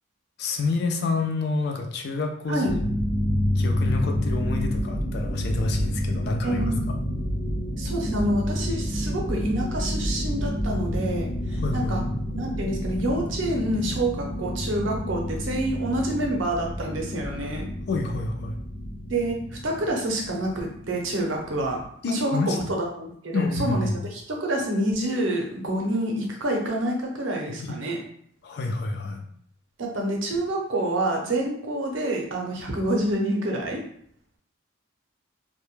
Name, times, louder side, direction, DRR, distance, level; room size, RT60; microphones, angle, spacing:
voice 1, 0.4-3.0 3.6-6.7 11.4-12.2 17.9-18.6 22.0-22.6 23.3-24.0 27.5-27.7 28.4-29.2, left 3 dB, 50° left, 3 dB, 0.3 m, -28 dB
sound 1, 2.7-21.8, equal, 85° left, 0.7 m, -29 dB
voice 2, 6.4-6.8 7.8-12.0 12.3-17.7 19.1-19.3 19.6-21.8 22.0-28.0 29.8-33.8, right 1 dB, 65° right, 0 dB, 0.6 m, -27 dB
2.2 x 2.0 x 3.0 m, 0.64 s
head